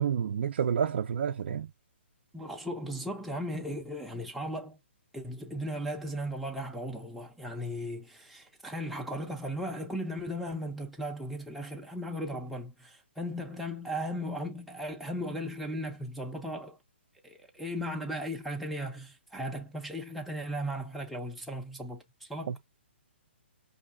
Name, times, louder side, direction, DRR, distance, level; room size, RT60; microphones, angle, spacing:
voice 1, 0.0-1.7 22.5-22.6, right 8 dB, 60° right, 0.4 m, -29 dB
voice 2, 2.3-4.8 5.1-16.8 17.2-22.6, equal, ahead, 0.4 m, -36 dB
5.2 x 2.6 x 2.4 m
hypercardioid pair, 155°, 7 cm